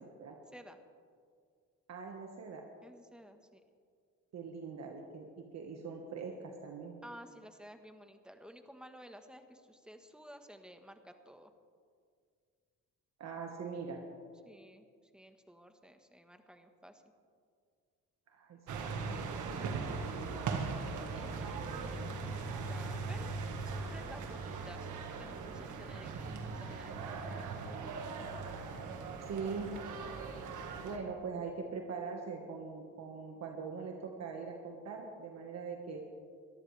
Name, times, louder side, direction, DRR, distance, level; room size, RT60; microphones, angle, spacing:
voice 1, 1.9-2.7 4.3-7.0 13.2-14.0 18.3-19.6 19.9-20.8 29.2-29.8 30.8-36.0, right 5 dB, 60° right, 2 dB, 1.5 m, -42 dB
voice 2, 2.8-3.6 7.0-11.5 14.4-14.8 15.1-17.0 21.1-24.9 25.2-27.5, equal, 5° right, 6 dB, 1.3 m, -54 dB
sound 1, 18.7-31.0, right 4 dB, 80° right, 1.7 m, -39 dB
22.5 x 13.5 x 3.4 m, 2.1 s
cardioid pair, 90°, 30 cm